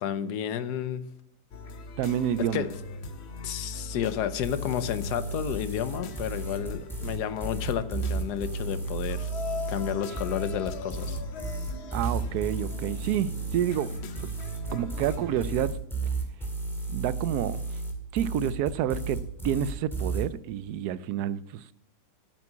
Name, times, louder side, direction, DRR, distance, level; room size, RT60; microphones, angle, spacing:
voice 1, 0.0-1.1 2.4-2.7 3.4-9.3 9.7-11.2, left 9 dB, 80° left, 1.3 m, -31 dB
sound 1, 1.5-15.7, left 3 dB, 50° left, 0.9 m, -40 dB
voice 2, 2.0-2.6 11.9-14.3 14.7-15.8 16.9-17.6 18.1-21.7, right 10 dB, 75° right, 1.1 m, -29 dB
sound 2, 4.4-20.2, right 3 dB, ahead, 1.9 m, -33 dB
9.5 x 7.5 x 7.3 m
omnidirectional pair, 1.8 m